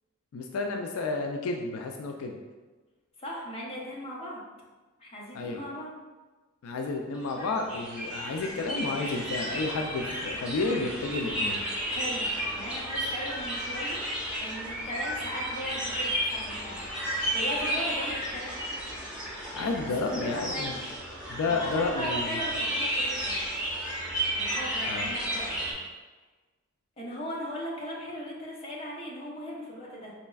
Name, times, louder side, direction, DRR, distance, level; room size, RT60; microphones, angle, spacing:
voice 1, 0.3-2.4 5.3-5.7 6.6-11.6 19.5-20.7 21.3-22.4 24.9-25.1, left 3 dB, 75° left, 3 dB, 0.3 m, -31 dB
voice 2, 3.2-4.4 5.0-5.9 11.9-12.3 12.5-14.0 14.4-16.8 17.3-18.6 20.0-20.8 21.5-23.4 24.3-25.6 27.0-30.1, equal, 30° left, -4 dB, 0.7 m, -38 dB
sound 1, 7.1-25.7, right 1 dB, 5° right, 0.9 m, -32 dB
4.1 x 3.2 x 2.3 m, 1.3 s
head